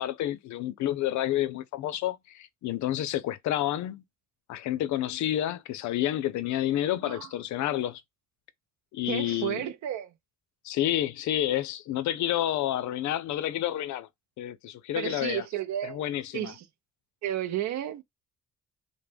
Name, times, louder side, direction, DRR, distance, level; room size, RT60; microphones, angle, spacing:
voice 1, 0.0-4.0 4.5-8.0 8.9-9.7 10.6-14.1 14.4-15.4 15.8-16.5, left 12 dB, 70° left, 0.5 m, -29 dB
voice 2, 9.0-10.1 14.9-16.0 16.3-16.7 17.2-18.0, right 11 dB, 70° right, 0.5 m, -32 dB
2.1 x 2.1 x 3.3 m
cardioid pair, 90°, 30 cm